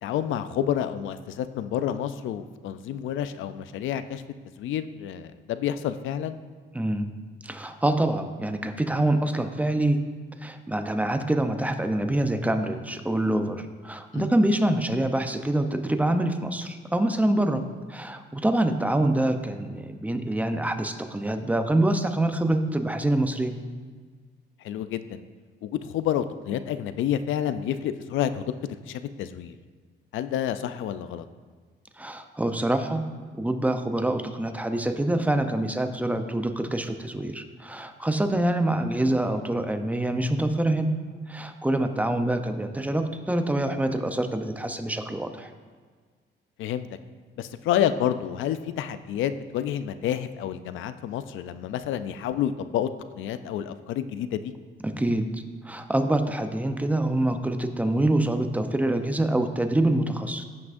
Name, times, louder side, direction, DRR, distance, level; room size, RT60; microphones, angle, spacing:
voice 1, 0.0-4.2 4.6-6.4 14.1-14.3 24.6-25.2 25.6-28.4 28.9-29.5 30.1-31.2 46.6-46.9 47.4-52.9 53.1-54.5, left 10 dB, 80° left, 12 dB, 0.5 m, -29 dB
voice 2, 6.7-7.1 7.4-10.0 10.4-17.6 17.9-23.6 32.0-33.0 33.4-40.9 41.3-45.5 54.8-55.3 55.6-60.4, right 1 dB, 5° right, 7 dB, 0.7 m, -25 dB
15.5 x 6.0 x 2.6 m, 1.5 s
cardioid pair, 90°, 20 cm